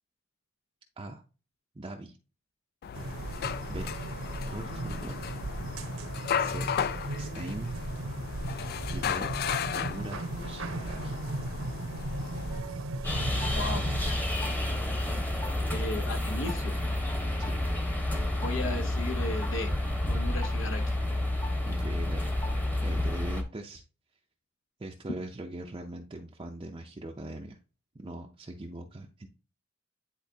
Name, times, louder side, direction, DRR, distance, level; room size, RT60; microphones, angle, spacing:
voice 1, 1.8-2.2 3.7-3.9 4.5-5.3 6.4-6.7 7.1-7.7 8.9-9.3 9.7-11.2 17.4-17.6 21.7-22.3 22.8-23.8 24.8-27.6 27.9-29.3, right 2 dB, 25° right, 1 dB, 0.5 m, -41 dB
sound 1, 2.8-12.6, left 8 dB, 50° left, 0.3 m, -35 dB
sound 2, 2.9-14.1, right 2 dB, 80° right, 1.0 m, -36 dB
sound 3, 13.0-23.4, left 1 dB, 10° left, 1.0 m, -30 dB
voice 2, 13.5-13.8 15.7-16.7 18.4-19.7 20.1-21.0, left 2 dB, 65° left, 6 dB, 0.9 m, -35 dB
10.0 x 3.7 x 2.8 m, 0.34 s
head